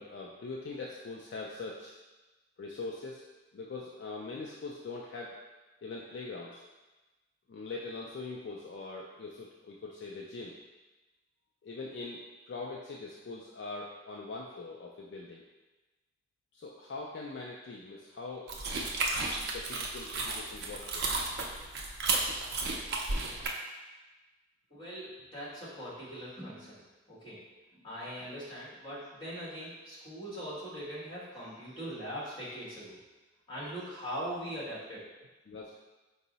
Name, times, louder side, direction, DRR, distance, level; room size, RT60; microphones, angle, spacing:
voice 1, 0.0-1.9 2.6-3.2 3.5-5.4 5.8-6.6 7.5-10.6 11.6-15.4 16.5-18.5 19.5-21.2 35.5-35.7, left 3 dB, 55° left, -2 dB, 0.3 m, -42 dB
sound 1, 18.5-23.5, right 3 dB, 50° right, 0.4 m, -33 dB
voice 2, 24.7-27.4 27.8-33.0 33.5-35.0, equal, 25° left, -9 dB, 1.4 m, -41 dB
4.5 x 2.0 x 3.9 m, 1.2 s
head